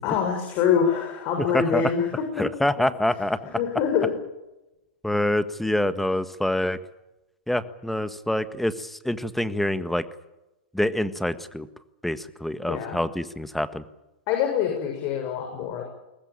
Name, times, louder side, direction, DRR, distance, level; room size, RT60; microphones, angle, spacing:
voice 1, 0.0-2.1 3.5-4.1 12.7-13.0 14.3-15.8, left 7 dB, 45° left, 3 dB, 6.8 m, -24 dB
voice 2, 2.4-3.6 5.0-6.8 7.5-10.0 10.7-11.7 12.0-13.8, left 1 dB, 5° left, 11 dB, 1.5 m, -26 dB
22.5 x 19.0 x 8.9 m, 0.96 s
hypercardioid pair, 115°, 6 cm